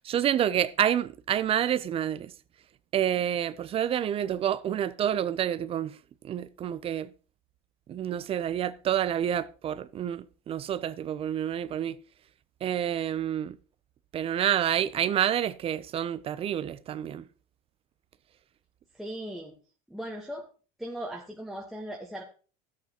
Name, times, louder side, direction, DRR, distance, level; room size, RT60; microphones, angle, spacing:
voice 1, 0.0-2.3 2.9-5.9 6.2-7.1 7.9-12.0 12.6-13.6 14.1-17.2, right 10 dB, 30° right, 0.5 m, -28 dB
voice 2, 18.9-19.5 19.9-20.4 20.8-22.2, right 1 dB, ahead, 1.2 m, -38 dB
12.5 x 8.3 x 2.9 m
supercardioid pair, 120°, 20 cm